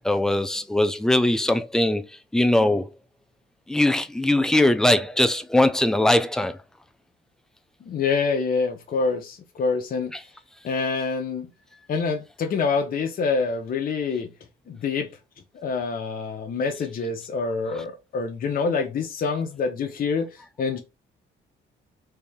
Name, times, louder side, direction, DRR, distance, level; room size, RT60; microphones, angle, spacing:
voice 1, 0.0-2.1 2.3-2.9 3.7-6.6 10.1-10.2, left 1 dB, 5° left, 0.4 m, -21 dB
voice 2, 7.8-10.1 10.6-11.5 11.9-14.3 14.7-15.1 15.6-20.8, left 4 dB, 45° left, 0.6 m, -26 dB
3.3 x 2.7 x 3.4 m
cardioid pair, 90°, 20 cm